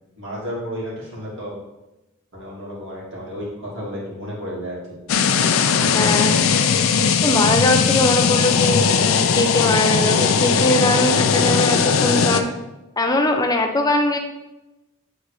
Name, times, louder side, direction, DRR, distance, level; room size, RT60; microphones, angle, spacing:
voice 1, 0.2-1.6 2.3-5.0 5.7-6.2, equal, 60° right, -6 dB, 2.3 m, -32 dB
sound 1, 5.1-12.4, left 6 dB, 65° left, 0.5 m, -18 dB
voice 2, 5.9-6.4 7.2-12.5 13.0-14.2, left 1 dB, 15° left, 3 dB, 0.6 m, -21 dB
8.4 x 4.1 x 3.1 m, 1.0 s
head